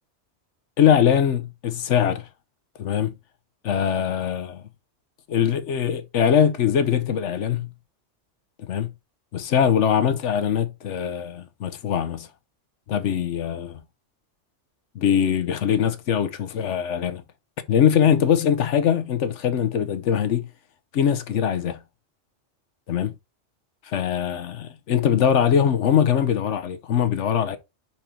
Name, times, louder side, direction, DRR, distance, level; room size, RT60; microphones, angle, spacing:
voice 1, 0.8-2.3 2.8-3.1 3.6-4.6 5.3-7.7 8.6-8.9 9.3-12.3 12.9-13.8 14.9-17.2 17.7-20.5 20.9-21.8 22.9-23.1 23.8-27.6, left 8 dB, 75° left, 1.0 m, -22 dB
5.3 x 4.3 x 4.4 m
omnidirectional pair, 1.2 m